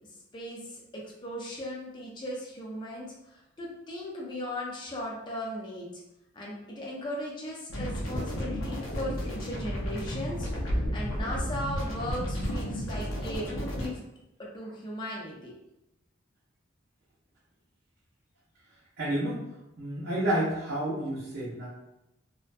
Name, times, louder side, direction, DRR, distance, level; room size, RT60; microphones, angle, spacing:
voice 1, 0.3-5.9 6.3-14.0 14.4-15.5, left 1 dB, 25° left, -3 dB, 0.4 m, -37 dB
sound 1, 7.7-13.9, equal, 85° left, 0.6 m, -32 dB
voice 2, 19.0-19.5 19.8-21.7, right 1 dB, 60° right, -10 dB, 0.6 m, -30 dB
2.5 x 2.1 x 2.5 m, 0.89 s
head